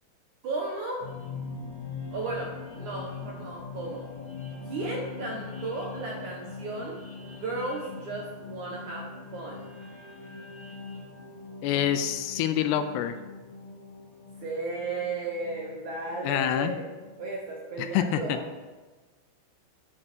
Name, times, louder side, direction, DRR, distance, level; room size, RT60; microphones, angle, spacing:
voice 1, 0.4-1.1 2.1-4.1 4.7-7.0 7.2-9.7 14.4-16.8 17.2-18.4, right 3 dB, 70° right, -1 dB, 1.9 m, -34 dB
sound 1, 1.0-18.1, left 4 dB, 40° left, 2.5 m, -42 dB
voice 2, 11.6-13.2 16.2-16.7 17.8-18.4, left 10 dB, 80° left, 9 dB, 2.6 m, -26 dB
12.5 x 6.7 x 6.1 m, 1.3 s
omnidirectional pair, 5.0 m